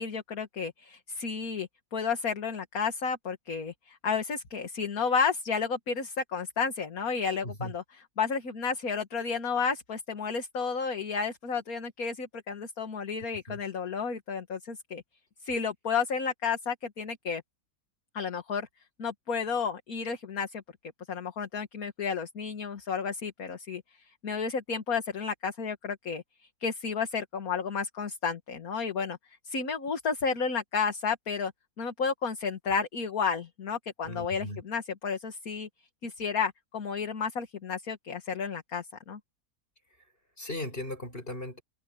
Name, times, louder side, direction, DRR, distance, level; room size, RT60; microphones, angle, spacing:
voice 1, 0.0-7.8 8.2-15.0 15.4-17.4 18.1-18.7 19.0-20.6 21.1-23.8 24.2-26.2 26.6-29.2 29.5-31.5 31.8-35.7 36.0-39.2, left 5 dB, 55° left, 2.2 m, -32 dB
voice 2, 34.0-34.6 40.4-41.6, left 1 dB, 30° left, 7.5 m, -37 dB
omnidirectional pair, 1.8 m